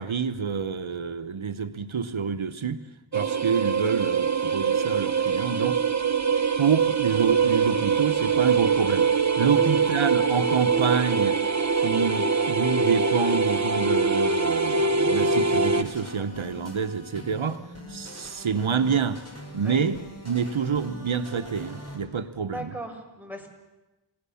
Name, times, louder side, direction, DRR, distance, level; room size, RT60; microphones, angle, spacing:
voice 1, 0.0-2.8 3.1-5.8 6.6-9.1 9.4-11.4 11.8-17.6 17.9-19.2 19.5-22.7, right 6 dB, 80° right, 10 dB, 1.0 m, -27 dB
sound 1, 3.1-15.8, right 5 dB, 35° right, 1.4 m, -23 dB
sound 2, 15.0-22.0, equal, 30° left, 5.1 m, -43 dB
voice 2, 22.5-23.5, right 1 dB, 5° right, 1 dB, 5.9 m, -38 dB
30.0 x 17.5 x 7.0 m, 1.1 s
wide cardioid pair, 40°, 47 cm